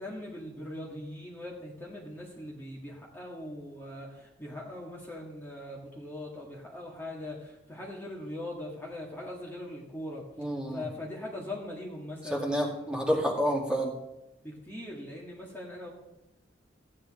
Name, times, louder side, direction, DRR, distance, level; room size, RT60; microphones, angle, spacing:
voice 1, 0.0-12.8 14.4-15.9, left 1 dB, 10° left, -3 dB, 2.0 m, -41 dB
voice 2, 10.4-10.8 12.3-13.9, equal, 5° right, -2 dB, 2.3 m, -29 dB
15.5 x 9.8 x 3.7 m, 0.90 s
head